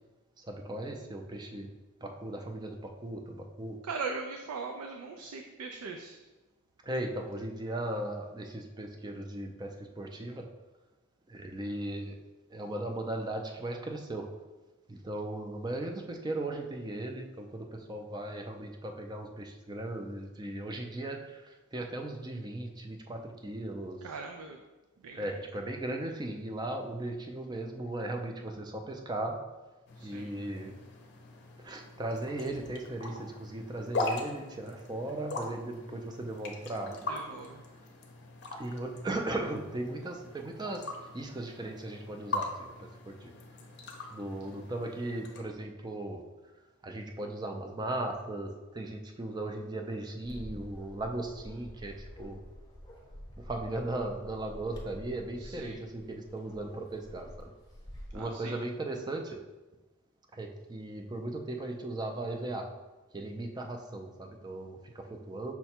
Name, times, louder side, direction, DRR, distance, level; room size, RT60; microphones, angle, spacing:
voice 1, 0.4-1.7 2.0-3.8 6.8-10.5 11.3-12.2 12.5-14.3 14.9-24.0 25.1-29.4 30.0-30.7 31.6-37.1 38.5-40.9 41.1-43.3 44.1-46.2 46.8-52.4 53.4-57.5 58.1-59.4 60.3-62.7 63.1-65.5, right 1 dB, 20° right, 3 dB, 0.4 m, -37 dB
voice 2, 3.8-6.2 24.0-24.6 25.0-25.4 30.0-30.3 37.0-37.6 55.4-55.8 58.1-58.6, right 4 dB, 85° right, 4 dB, 0.4 m, -40 dB
sound 1, 29.9-45.4, left 2 dB, 50° left, 0.6 m, -41 dB
Bark, 50.2-58.2, equal, 15° left, 0.7 m, -48 dB
5.7 x 2.2 x 4.2 m, 1.2 s
head